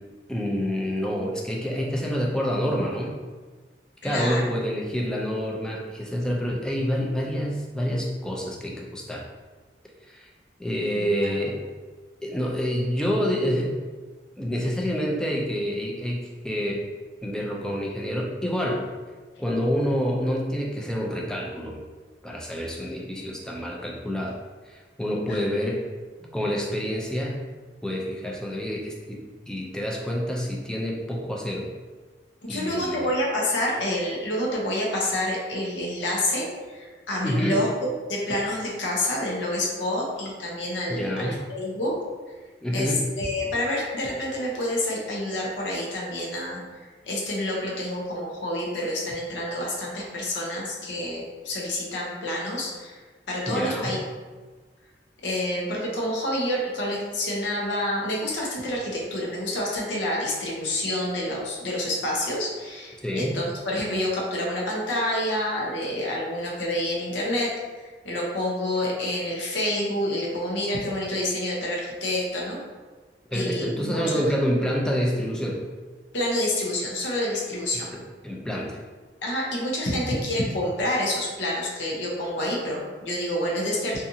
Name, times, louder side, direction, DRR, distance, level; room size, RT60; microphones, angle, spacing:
voice 1, 0.3-3.1 4.0-9.3 10.1-10.3 10.6-11.6 12.2-13.8 14.4-16.8 17.2-18.9 19.4-21.8 22.2-24.4 24.7-25.8 26.3-27.4 27.8-29.2 29.5-31.7 32.5-33.1 37.2-37.6 40.9-41.4 42.6-43.0 53.5-54.0 63.0-63.4 73.3-75.6 77.7-78.8, equal, 5° left, -2 dB, 0.3 m, -27 dB
voice 2, 4.0-4.4 10.9-11.3 25.3-25.4 32.4-37.7 38.1-41.9 42.7-46.6 47.0-53.0 53.3-54.0 55.2-67.5 67.8-72.6 73.3-74.2 76.1-77.9 79.2-84.0, left 1 dB, 75° left, -3 dB, 0.7 m, -28 dB
2.7 x 2.4 x 2.6 m, 1.4 s
head